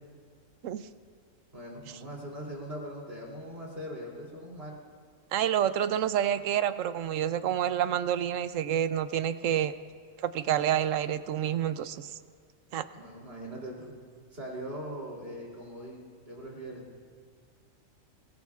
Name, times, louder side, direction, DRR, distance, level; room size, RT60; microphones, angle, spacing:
voice 1, 1.5-4.7 12.9-13.9 14.3-16.8, equal, 45° right, -3 dB, 3.4 m, -41 dB
voice 2, 5.3-9.7 10.2-12.1 12.7-12.8, right 10 dB, 75° right, 12 dB, 1.0 m, -28 dB
23.0 x 18.0 x 2.4 m, 2.1 s
omnidirectional pair, 1.4 m